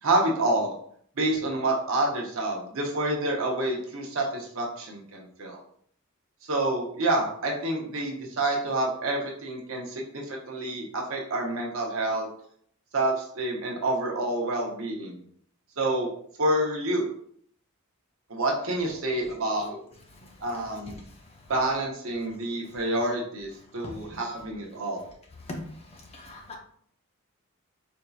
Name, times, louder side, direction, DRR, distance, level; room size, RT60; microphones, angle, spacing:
voice 1, 0.0-0.7 1.2-5.6 6.4-12.3 12.9-15.2 15.8-16.1 16.4-17.0 18.3-19.8 20.4-21.0 21.5-25.0, right 1 dB, 65° right, -1 dB, 0.8 m, -28 dB
voice 2, 26.1-26.6, left 2 dB, 25° left, 1 dB, 0.5 m, -39 dB
4.4 x 2.7 x 2.3 m, 0.62 s
head